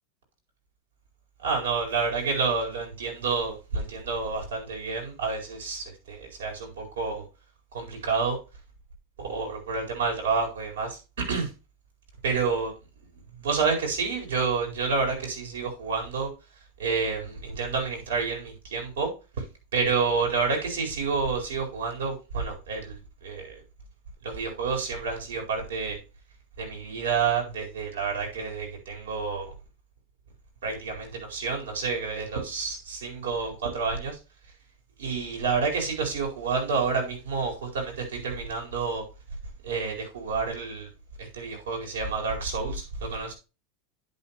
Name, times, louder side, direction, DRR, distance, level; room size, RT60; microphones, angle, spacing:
voice 1, 1.4-7.2 7.7-8.4 9.2-11.5 12.2-12.7 13.4-16.3 16.8-19.1 19.7-23.6 24.2-26.0 26.6-29.5 30.6-34.2 35.0-39.0 39.6-40.9 41.2-43.3, right 5 dB, 90° right, 1 dB, 4.4 m, -29 dB
10.5 x 5.9 x 3.0 m, 0.29 s
supercardioid pair, 130°, 0 cm